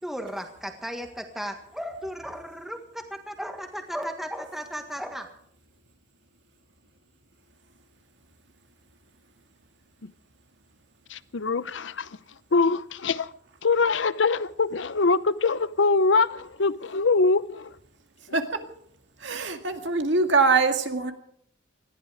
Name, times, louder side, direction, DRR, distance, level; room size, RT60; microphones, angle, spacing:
voice 1, 0.0-5.3, equal, ahead, 1.7 m, -35 dB
voice 2, 11.1-12.1 12.5-13.3 13.6-17.7, left 4 dB, 70° left, 0.7 m, -23 dB
voice 3, 19.2-21.1, right 4 dB, 65° right, 2.1 m, -23 dB
20.0 x 14.5 x 5.0 m
head